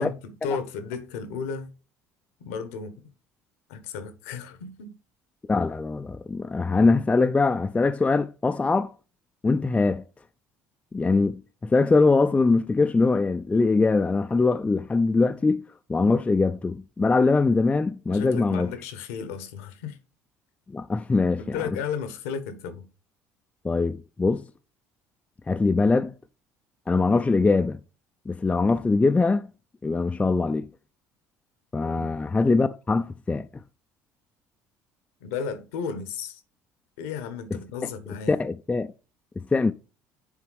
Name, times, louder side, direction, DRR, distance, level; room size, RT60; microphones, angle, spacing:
voice 1, 0.0-1.7 2.4-3.0 3.7-4.9 18.1-20.0 21.4-22.9 31.8-32.1 35.2-36.4 37.0-38.4, left 6 dB, 75° left, 1.0 m, -34 dB
voice 2, 5.5-8.9 9.4-10.0 10.9-15.6 15.9-18.7 20.7-21.4 23.6-24.4 25.5-26.1 26.9-27.8 28.3-29.5 29.8-30.7 31.7-33.5 37.8-37.9 38.3-38.9 39.4-39.7, left 3 dB, 15° left, 0.4 m, -22 dB
9.5 x 3.6 x 3.2 m
hypercardioid pair, 65°, 7 cm